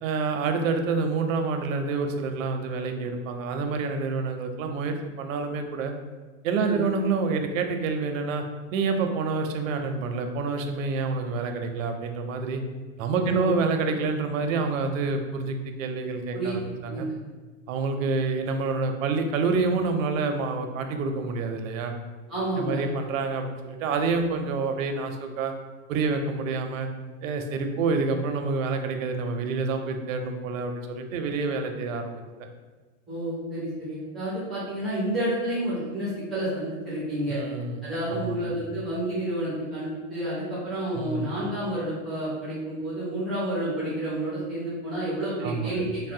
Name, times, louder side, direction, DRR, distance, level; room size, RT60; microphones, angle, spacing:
voice 1, 0.0-5.9 6.4-8.4 8.7-12.6 13.0-17.1 17.7-22.0 22.6-25.5 25.9-26.9 27.2-32.2 37.3-37.8 38.1-38.5 40.9-41.3 45.4-45.7, right 4 dB, 85° right, 5 dB, 0.6 m, -28 dB
voice 2, 13.2-13.5 16.3-16.6 16.9-17.0 22.3-22.8 33.1-37.4 37.8-46.1, right 1 dB, ahead, -12 dB, 0.4 m, -30 dB
4.0 x 2.0 x 2.6 m, 1.3 s
supercardioid pair, 170°, 38 cm